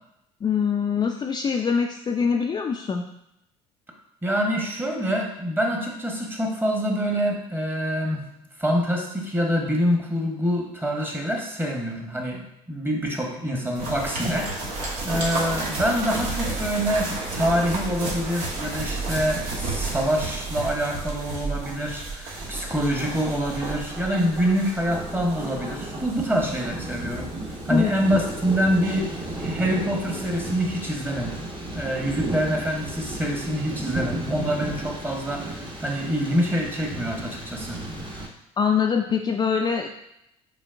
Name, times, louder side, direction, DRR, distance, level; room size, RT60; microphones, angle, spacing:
voice 1, 0.4-3.1 27.7-27.9 38.6-39.9, left 6 dB, 30° left, 3 dB, 0.4 m, -23 dB
voice 2, 4.2-8.2 8.6-27.3 27.6-31.4 31.7-37.8, equal, 15° right, 1 dB, 1.2 m, -26 dB
sound 1, 13.7-29.9 30.2-30.3, right 3 dB, 70° right, 1.3 m, -32 dB
Thunder, 22.3-38.3, right 1 dB, 30° right, 1.1 m, -34 dB
5.0 x 3.5 x 2.6 m, 0.83 s
hypercardioid pair, 65°, 15 cm